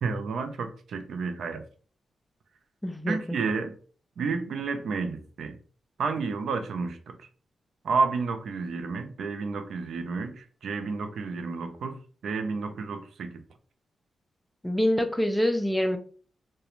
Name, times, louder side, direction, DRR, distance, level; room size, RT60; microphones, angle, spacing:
voice 1, 0.0-1.6 3.1-3.8 4.2-5.6 6.0-7.2 7.8-13.4, right 4 dB, 80° right, 0.4 m, -31 dB
voice 2, 2.8-3.4 14.6-16.0, equal, 5° left, 0.4 m, -26 dB
2.4 x 2.2 x 2.9 m
cardioid pair, 80°, 0 cm